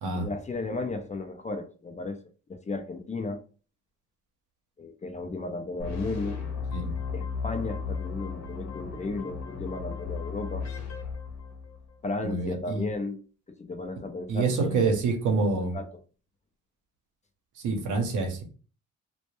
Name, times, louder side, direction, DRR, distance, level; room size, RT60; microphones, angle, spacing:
voice 1, 0.2-2.2 2.5-3.4 4.8-6.4 7.1-10.7 12.0-13.2 13.5-14.9 15.7-15.9, left 3 dB, 25° left, 0.4 m, -34 dB
sound 1, 5.8-11.9, left 5 dB, 65° left, 0.8 m, -35 dB
voice 2, 12.2-12.9 14.3-15.8 17.6-18.4, right 4 dB, 80° right, 0.8 m, -27 dB
2.1 x 2.1 x 2.9 m
cardioid pair, 85°, 30 cm